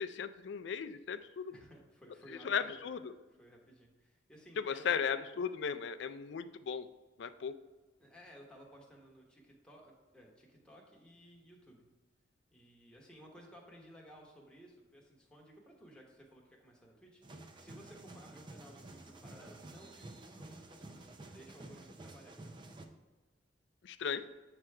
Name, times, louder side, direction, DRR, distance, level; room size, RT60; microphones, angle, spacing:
voice 1, 0.0-1.5 2.4-3.1 4.7-6.9 7.2-7.5 23.8-24.2, left 7 dB, 65° left, 12 dB, 0.4 m, -36 dB
voice 2, 1.5-2.8 3.4-5.0 8.0-11.9 12.5-22.6, equal, 5° left, -2 dB, 1.1 m, -57 dB
sound 1, 17.2-22.9, right 2 dB, 25° right, 0.5 m, -51 dB
7.5 x 3.3 x 4.7 m, 1.2 s
head